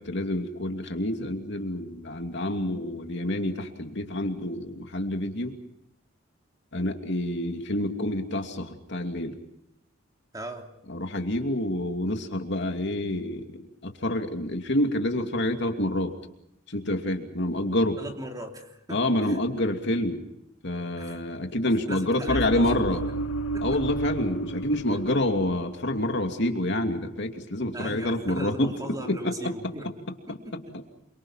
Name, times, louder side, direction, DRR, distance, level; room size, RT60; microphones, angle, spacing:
voice 1, 0.0-5.6 6.7-9.4 10.9-16.1 16.7-18.0 18.9-20.2 20.6-23.0 23.6-28.7 29.0-29.5 30.3-30.4, left 1 dB, 60° left, 4 dB, 2.7 m, -28 dB
voice 2, 10.3-10.7 18.0-19.4 21.0-21.2 21.9-23.6 27.7-30.8, equal, 20° right, 2 dB, 3.2 m, -39 dB
sound 1, 22.3-25.8 26.0-26.4, right 2 dB, 90° left, 1.8 m, -32 dB
28.5 x 24.5 x 5.8 m, 0.81 s
head